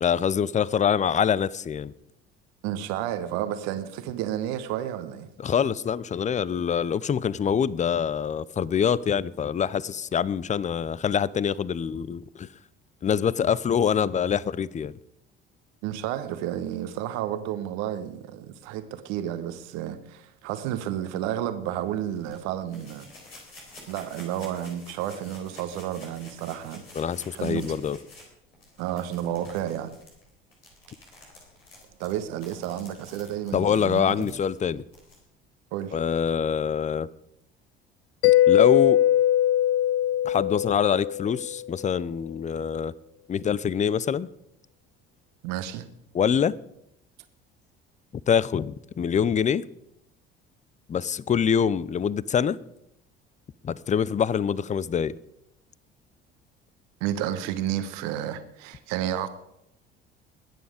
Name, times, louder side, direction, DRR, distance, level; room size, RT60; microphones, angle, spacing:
voice 1, 0.0-1.9 5.4-12.5 13.0-14.9 27.0-28.0 33.5-34.8 35.9-37.1 38.2-39.0 40.2-42.9 43.3-44.3 46.1-46.6 48.3-49.6 50.9-52.6 53.6-55.2, left 7 dB, 25° left, 0.6 m, -25 dB
voice 2, 2.6-5.3 15.8-23.1 23.9-26.8 27.3-27.7 28.8-29.9 32.0-34.3 35.7-36.0 45.4-45.9 57.0-59.3, right 11 dB, 60° right, 1.2 m, -31 dB
sound 1, 22.1-35.2, left 2 dB, 85° left, 4.1 m, -50 dB
Mallet percussion, 38.2-41.7, left 12 dB, 65° left, 0.5 m, -21 dB
21.5 x 9.3 x 5.1 m
figure-of-eight pair, 55°, 30 cm